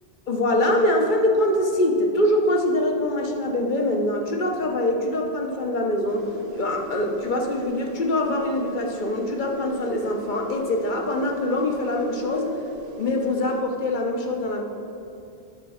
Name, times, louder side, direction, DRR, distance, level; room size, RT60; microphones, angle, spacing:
voice 1, 0.3-6.3 6.5-12.6 13.0-14.6, left 1 dB, 45° left, 2 dB, 1.1 m, -24 dB
sound 1, 6.1-13.6, right 4 dB, 60° right, 0.7 m, -39 dB
10.0 x 4.6 x 6.3 m, 2.6 s
omnidirectional pair, 1.2 m